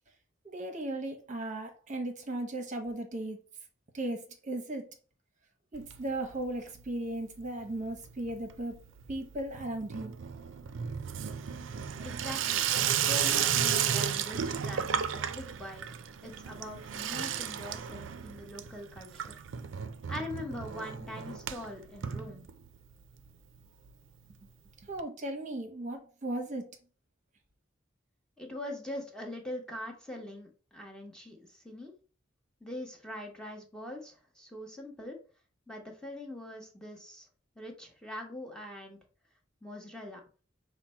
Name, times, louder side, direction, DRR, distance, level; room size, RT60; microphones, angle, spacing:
voice 1, 0.4-3.4 3.9-4.9 5.7-8.8 9.1-10.1 24.9-26.7, right 1 dB, 40° right, 0.8 m, -36 dB
Water tap faucet / Sink (filling or washing), 5.7-6.5 6.8-7.4 7.6-22.9 23.3-23.4 23.5-23.6 23.9-24.0 25.0-25.1, right 8 dB, 70° right, 0.4 m, -34 dB
voice 2, 12.0-15.8 16.2-19.4 20.1-22.5 28.4-31.9 32.6-35.2 35.7-37.3 37.6-39.0 39.6-40.2, left 1 dB, 5° left, 0.8 m, -42 dB
5.7 x 2.1 x 4.2 m
head